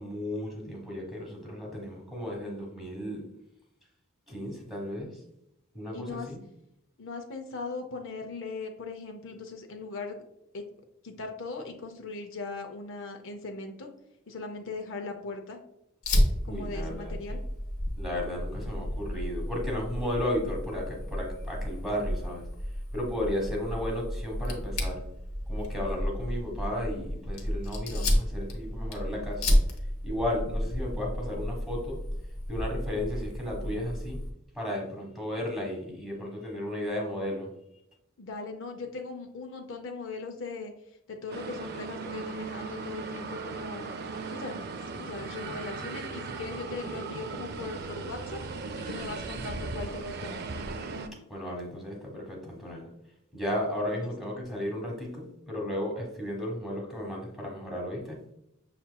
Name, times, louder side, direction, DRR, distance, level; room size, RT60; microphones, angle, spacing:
voice 1, 0.0-3.2 4.3-5.1 5.7-6.4 16.4-17.1 18.0-22.4 22.9-25.0 25.5-29.4 30.0-32.0 32.5-34.2 34.5-37.5 51.3-52.9 53.3-58.2, left 1 dB, ahead, -1 dB, 1.1 m, -34 dB
voice 2, 5.9-6.3 7.0-10.2 10.5-10.6 11.0-13.9 14.3-15.6 16.4-17.4 38.2-40.7 41.1-43.9 44.3-48.4 48.8-50.4 54.0-54.1, left 3 dB, 60° left, 4 dB, 0.5 m, -39 dB
Fire, 16.0-34.3, equal, 75° left, 1.0 m, -31 dB
sound 1, 41.3-51.1, right 4 dB, 50° right, 0.4 m, -37 dB
6.6 x 2.9 x 2.2 m, 0.80 s
head